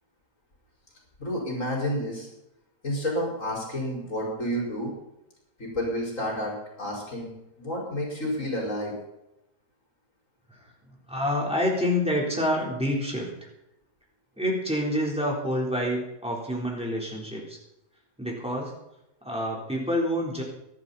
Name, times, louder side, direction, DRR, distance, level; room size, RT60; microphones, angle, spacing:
voice 1, 1.2-2.3 2.8-4.9 5.6-7.3 7.6-8.9, equal, 50° left, -3 dB, 5.5 m, -30 dB
voice 2, 11.1-13.3 14.4-17.6 18.2-18.7 19.2-20.4, equal, 5° right, -3 dB, 3.9 m, -27 dB
23.5 x 11.5 x 4.2 m, 0.89 s
omnidirectional pair, 1.7 m